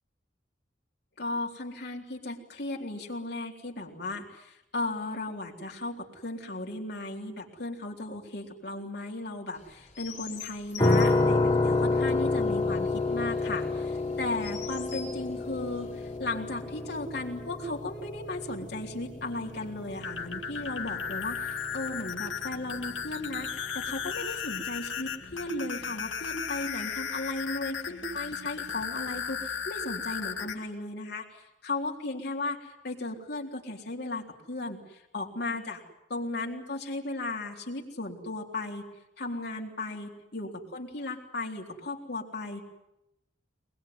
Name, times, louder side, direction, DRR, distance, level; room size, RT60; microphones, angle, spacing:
voice 1, 1.2-35.8 36.1-38.8 39.2-42.7, left 2 dB, 60° left, 1 dB, 3.9 m, -36 dB
Chirp tweet, 9.5-16.2, left 7 dB, 40° left, 5.8 m, -47 dB
sound 1, 10.8-23.6, left 2 dB, 20° left, 1.9 m, -30 dB
sound 2, 19.9-30.6, left 7 dB, 80° left, 2.2 m, -36 dB
24.0 x 21.0 x 9.6 m, 0.86 s
head